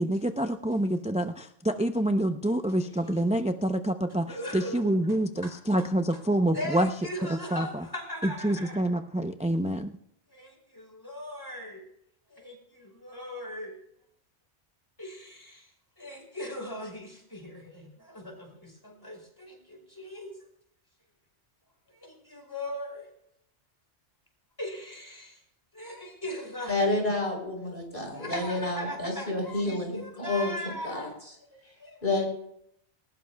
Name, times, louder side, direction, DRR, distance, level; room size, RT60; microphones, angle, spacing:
voice 1, 0.0-6.9 7.5-7.8 8.2-10.0, right 1 dB, 10° right, 7 dB, 0.3 m, -27 dB
voice 2, 4.3-4.9 5.4-5.6 6.5-8.8 10.3-11.8 12.3-13.8 15.0-15.7 16.0-20.3 21.9-23.1 24.6-25.4 25.7-27.2 28.1-31.2 31.5-32.3, left 1 dB, 20° left, 1 dB, 4.6 m, -39 dB
voice 3, 26.7-30.5 30.8-31.1 32.0-32.3, left 2 dB, 50° left, 1 dB, 4.9 m, -29 dB
19.5 x 18.5 x 2.3 m, 0.73 s
omnidirectional pair, 1.2 m